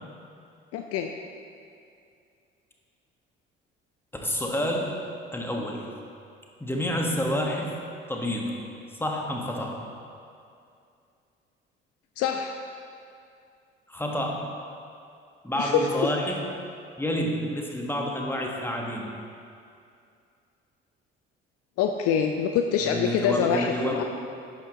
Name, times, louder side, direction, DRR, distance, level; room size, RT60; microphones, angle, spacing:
voice 1, 0.7-1.1 12.2-12.6 15.6-15.9 21.8-24.0, left 7 dB, 50° left, 5 dB, 0.6 m, -25 dB
voice 2, 4.1-5.0 5.3-5.9 6.6-7.8 8.1-8.5 9.0-9.8 13.9-14.6 15.4-16.4 17.0-19.1 22.8-24.0, equal, 5° left, 0 dB, 1.5 m, -29 dB
11.0 x 9.0 x 3.1 m, 2.4 s
figure-of-eight pair, 45°, 30 cm